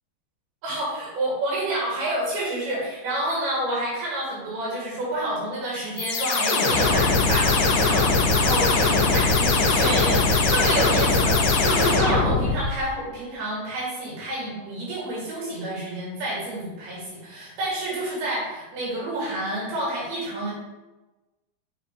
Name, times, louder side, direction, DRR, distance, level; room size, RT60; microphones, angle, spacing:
voice 1, 0.6-20.5, right 1 dB, 85° right, -6 dB, 4.4 m, -29 dB
sound 1, 6.0-12.8, left 3 dB, 70° left, 2.6 m, -21 dB
7.3 x 5.0 x 4.7 m, 1.1 s
omnidirectional pair, 4.3 m